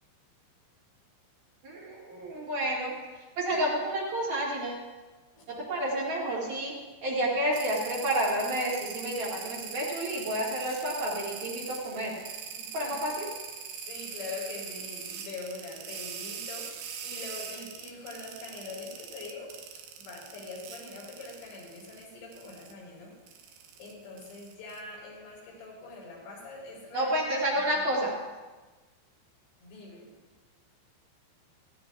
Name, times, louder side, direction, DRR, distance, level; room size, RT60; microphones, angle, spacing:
voice 1, 1.6-4.8 5.5-6.7 7.0-12.2 12.7-13.3 26.9-28.1, right 1 dB, 50° right, -6 dB, 3.3 m, -30 dB
sound 1, 7.5-22.0 22.3-22.7 23.3-24.8, right 7 dB, 85° right, 2.0 m, -41 dB
voice 2, 13.9-19.5 20.0-23.5 23.8-28.0 29.6-30.1, left 3 dB, 75° left, -5 dB, 6.7 m, -43 dB
17.5 x 15.0 x 2.4 m, 1.3 s
omnidirectional pair, 5.3 m